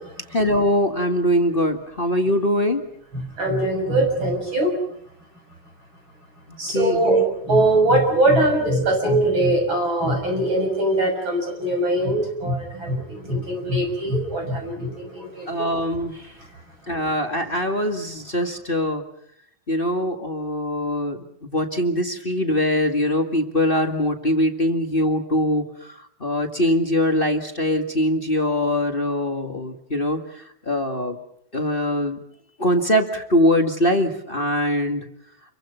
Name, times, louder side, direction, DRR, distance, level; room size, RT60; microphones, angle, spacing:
voice 1, 0.3-2.8 6.7-7.0 15.5-16.3 16.9-19.0 19.7-25.9 26.2-30.2 30.6-31.2 31.5-32.2 32.6-35.0, left 1 dB, 25° left, 5 dB, 1.4 m, -22 dB
voice 2, 3.4-4.7 6.6-15.7, right 1 dB, 35° right, 2 dB, 7.4 m, -21 dB
29.5 x 23.0 x 5.7 m, 0.70 s
omnidirectional pair, 3.7 m